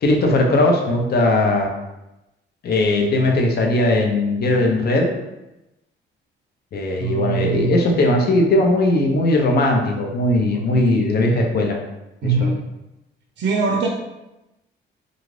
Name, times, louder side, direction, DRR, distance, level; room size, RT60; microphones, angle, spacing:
voice 1, 0.0-1.7 2.6-5.1 6.7-11.8, left 2 dB, 55° left, 1 dB, 0.6 m, -18 dB
voice 2, 7.0-7.8 10.5-11.0 12.2-12.6 13.4-13.9, right 4 dB, 65° right, 0 dB, 0.5 m, -22 dB
2.5 x 2.4 x 3.2 m, 0.95 s
cardioid pair, 90°, 20 cm